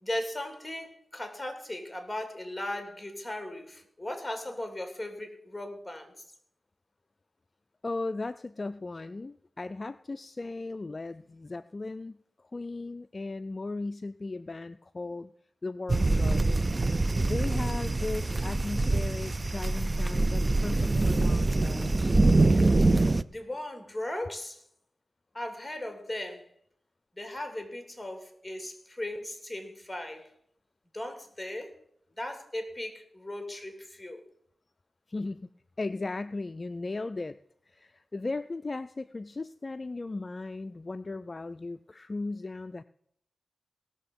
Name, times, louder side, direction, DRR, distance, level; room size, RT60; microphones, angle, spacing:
voice 1, 0.0-6.1 23.3-24.6 25.3-26.5 27.2-30.3 30.9-31.8 32.2-34.2, left 1 dB, 10° left, 6 dB, 2.7 m, -37 dB
voice 2, 7.8-15.3 15.6-16.6 17.2-22.1 35.1-35.5 35.8-37.4 37.7-42.8, left 3 dB, 40° left, 12 dB, 0.4 m, -37 dB
sound 1, 15.9-23.2, right 2 dB, 30° right, 0.4 m, -25 dB
18.0 x 6.6 x 5.3 m, 0.69 s
cardioid pair, 70°, 0 cm